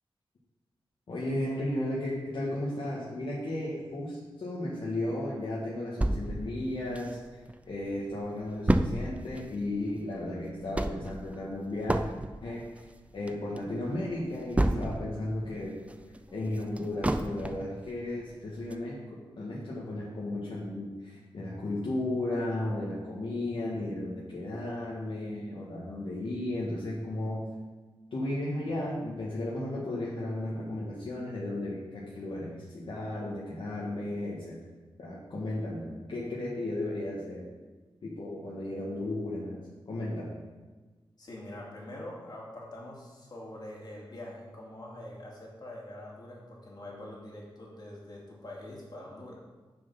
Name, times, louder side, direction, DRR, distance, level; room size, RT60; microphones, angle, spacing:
voice 1, 1.1-7.2 7.7-12.0 12.4-12.6 13.1-15.8 16.3-27.5 28.1-34.6 35.0-37.5 38.0-40.4, left 1 dB, 65° left, -6 dB, 1.6 m, -34 dB
sound 1, 6.0-7.5 7.9-8.0 8.2-15.2 15.6-17.8 18.2-18.3 18.7-18.8, right 1 dB, 15° right, 0.5 m, -30 dB
voice 2, 41.2-49.4, left 1 dB, 45° left, -3 dB, 2.6 m, -44 dB
6.8 x 6.8 x 5.7 m, 1.3 s
wide cardioid pair, 110°, 10 cm